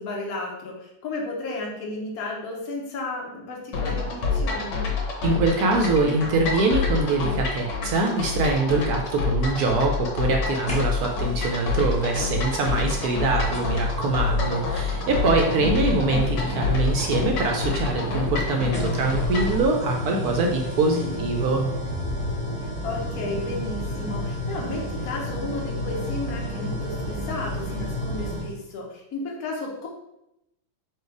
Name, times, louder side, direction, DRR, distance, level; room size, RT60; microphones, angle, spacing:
voice 1, 0.0-4.8 14.3-14.8 21.0-21.4 22.8-29.9, left 2 dB, 60° left, -1 dB, 1.3 m, -33 dB
sound 1, 3.7-19.6, left 4 dB, 80° left, 1.6 m, -27 dB
voice 2, 5.2-21.7, right 3 dB, 70° right, 2 dB, 1.0 m, -24 dB
sound 2, 10.7-11.3 12.6-12.7 13.5-28.5, left 1 dB, 10° left, 0.5 m, -31 dB
4.7 x 2.4 x 4.6 m, 0.86 s
omnidirectional pair, 1.9 m